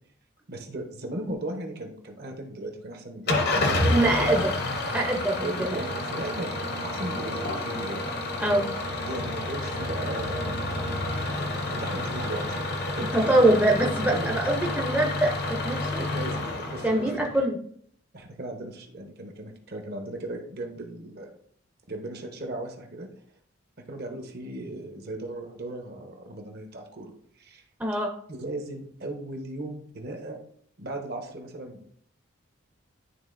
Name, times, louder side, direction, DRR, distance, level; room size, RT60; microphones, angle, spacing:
voice 1, 0.5-4.5 5.4-8.0 9.1-10.6 10.9-12.6 12.9-13.6 14.1-14.3 16.0-17.1 18.1-21.3 21.9-23.1 23.9-27.1 27.4-27.6 28.3-30.4 30.8-31.8, right 1 dB, 50° right, 3 dB, 1.0 m, -37 dB
Engine starting / Idling, 3.3-17.4, left 2 dB, 50° left, 0.9 m, -29 dB
voice 2, 3.9-4.4 4.9-5.8 8.4-8.7 13.1-16.0 16.8-17.6 27.8-28.1, right 1 dB, 5° right, -1 dB, 0.6 m, -23 dB
11.0 x 3.8 x 2.6 m, 0.63 s
head